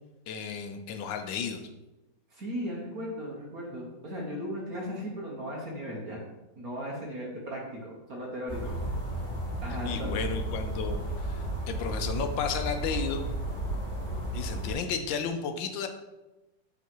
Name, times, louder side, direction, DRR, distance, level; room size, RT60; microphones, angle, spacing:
voice 1, 0.3-1.6 9.8-13.2 14.3-15.9, left 6 dB, 80° left, 7 dB, 1.5 m, -33 dB
voice 2, 2.3-6.2 6.6-8.8 9.6-10.2, equal, 50° right, -3 dB, 1.9 m, -37 dB
sound 1, 8.5-14.7, right 1 dB, 25° left, 3.1 m, -33 dB
9.3 x 4.1 x 4.6 m, 1.0 s
omnidirectional pair, 2.0 m